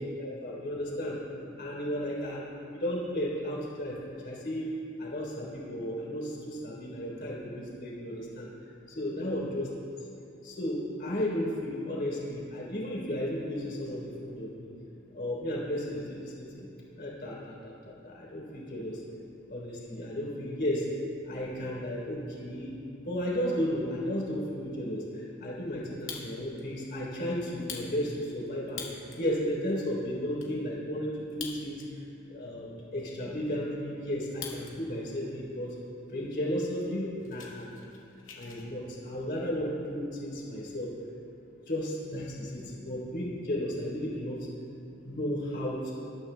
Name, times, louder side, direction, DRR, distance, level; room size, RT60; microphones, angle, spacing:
voice 1, 0.2-1.2 1.6-2.4 2.7-4.7 5.0-8.5 8.9-9.6 10.4-14.7 15.1-16.7 17.0-17.7 18.0-19.0 19.5-20.9 21.3-22.7 23.0-28.8 29.1-31.8 32.3-32.7 32.9-35.7 36.1-37.9 38.3-40.9 41.7-44.4 45.0-45.9, equal, 55° left, -4 dB, 3.4 m, -34 dB
Fire, 25.8-26.6 27.0-27.1 27.5-29.3 29.8-29.9 30.0-30.5 31.2-32.1 32.4-32.5 33.0-34.7 35.1-35.5 36.1-36.2 36.4-36.6 36.9-38.7, left 6 dB, 80° left, 2.1 m, -44 dB
21.0 x 13.0 x 2.2 m, 2.6 s
head